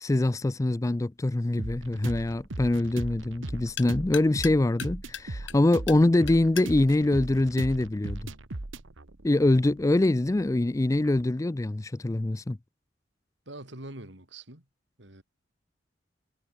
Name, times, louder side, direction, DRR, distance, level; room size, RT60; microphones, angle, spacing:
voice 1, 0.0-8.3 9.2-12.6, left 2 dB, 15° left, 0.4 m, -24 dB
sound 1, 0.7-8.3, left 10 dB, 75° left, 2.3 m, -44 dB
sound 2, 1.6-11.2, right 2 dB, 85° right, 1.5 m, -39 dB
voice 2, 13.5-14.6 15.0-15.2, right 1 dB, 65° right, 4.2 m, -43 dB
head